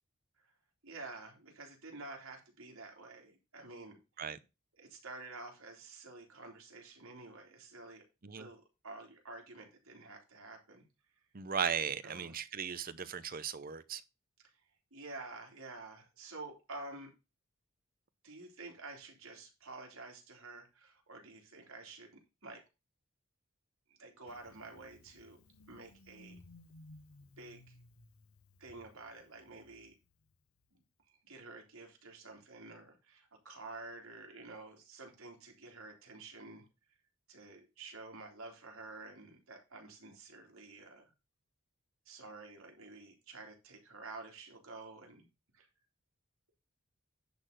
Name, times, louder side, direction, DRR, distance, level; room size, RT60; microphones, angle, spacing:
voice 1, 0.8-4.0 4.8-8.0 8.4-10.8 12.0-12.3 14.4-14.5 14.9-17.1 18.2-22.6 24.0-25.4 25.7-26.4 27.4-27.8 28.6-29.9 30.7-30.8 31.1-36.6 37.3-41.1 42.0-45.2 45.5-45.7, right 3 dB, 85° right, 3.2 m, -50 dB
voice 2, 11.3-14.0, right 7 dB, 45° right, 0.7 m, -37 dB
Engine starting, 24.3-30.8, left 2 dB, 85° left, 1.0 m, -60 dB
10.5 x 4.1 x 6.6 m
head